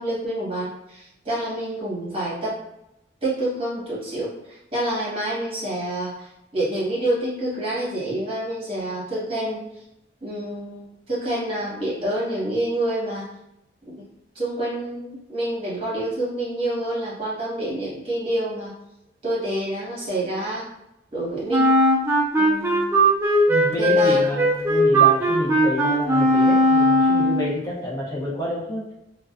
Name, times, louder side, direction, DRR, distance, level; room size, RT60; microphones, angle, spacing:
voice 1, 0.0-2.6 3.2-9.6 10.2-13.2 13.8-14.0 14.3-18.7 19.2-20.6 21.1-21.7 22.4-22.9 23.8-24.3, right 1 dB, 35° right, -7 dB, 1.1 m, -27 dB
Wind instrument woodwind instrument, 21.5-27.5, right 1 dB, 15° right, 0.3 m, -18 dB
voice 2, 23.5-28.8, left 1 dB, 20° left, -6 dB, 0.7 m, -28 dB
2.3 x 2.2 x 2.4 m, 0.85 s
head